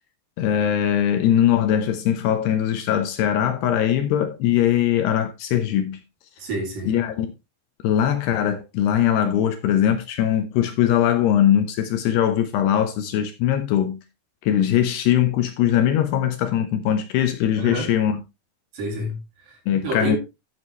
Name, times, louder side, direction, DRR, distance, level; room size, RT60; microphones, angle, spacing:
voice 1, 0.4-6.0 6.9-7.3 7.8-14.0 14.4-18.2 19.7-20.2, left 10 dB, 75° left, 2.8 m, -21 dB
voice 2, 6.4-7.0 17.6-17.9 18.7-20.2, right 1 dB, 50° right, 4.2 m, -29 dB
12.5 x 7.5 x 3.1 m
omnidirectional pair, 5.3 m